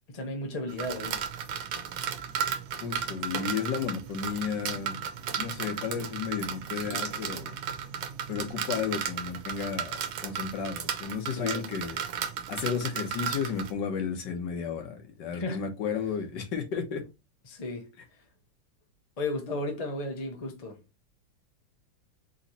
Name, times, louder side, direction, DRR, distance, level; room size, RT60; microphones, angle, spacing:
voice 1, 0.1-1.2 6.8-7.0 11.4-11.6 15.3-15.6 17.5-17.9 19.2-20.8, left 2 dB, 40° left, 0.5 m, -34 dB
sound 1, 0.7-13.7, right 8 dB, 90° right, 1.4 m, -35 dB
voice 2, 2.8-5.0 5.4-7.6 8.3-10.0 10.2-12.0 12.5-17.0, left 6 dB, 70° left, 1.6 m, -33 dB
4.1 x 3.1 x 4.0 m
omnidirectional pair, 2.0 m